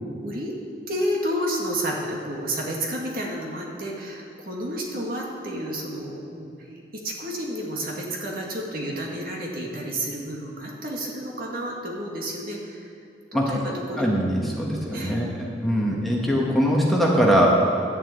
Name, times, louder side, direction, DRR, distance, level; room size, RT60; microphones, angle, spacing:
voice 1, 0.2-0.5 0.9-6.7 6.9-12.9 13.3-14.1 14.3-14.6 14.9-15.1 15.7-16.0, equal, 50° right, -2 dB, 2.0 m, -31 dB
voice 2, 14.0-17.5, equal, ahead, -3 dB, 1.4 m, -22 dB
11.0 x 7.3 x 8.7 m, 2.4 s
head